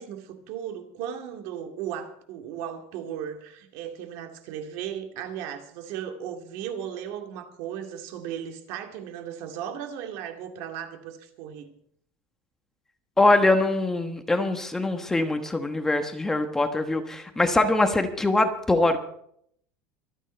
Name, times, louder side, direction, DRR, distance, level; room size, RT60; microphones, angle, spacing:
voice 1, 0.0-11.7, right 9 dB, 60° right, 5 dB, 2.3 m, -36 dB
voice 2, 13.2-19.0, left 2 dB, 10° left, 6 dB, 1.2 m, -23 dB
24.5 x 9.1 x 4.5 m, 0.66 s
cardioid pair, 155°, 6 cm